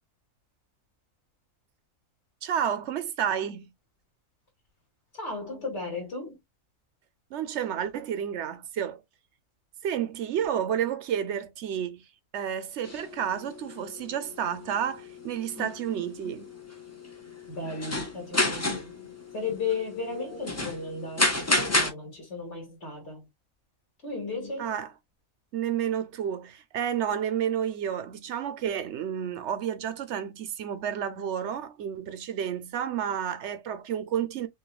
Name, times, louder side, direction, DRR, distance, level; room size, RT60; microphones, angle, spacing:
voice 1, 2.4-3.7 7.3-9.0 9.8-12.1 12.3-16.5 24.6-24.9 25.5-34.5, right 9 dB, 60° right, 0.9 m, -31 dB
voice 2, 5.1-6.4 17.5-19.0 19.3-23.3 24.0-24.8, left 4 dB, 55° left, 2.6 m, -35 dB
sound 1, 12.8-21.9, left 2 dB, 15° left, 0.5 m, -32 dB
6.3 x 2.6 x 2.2 m
omnidirectional pair, 1.5 m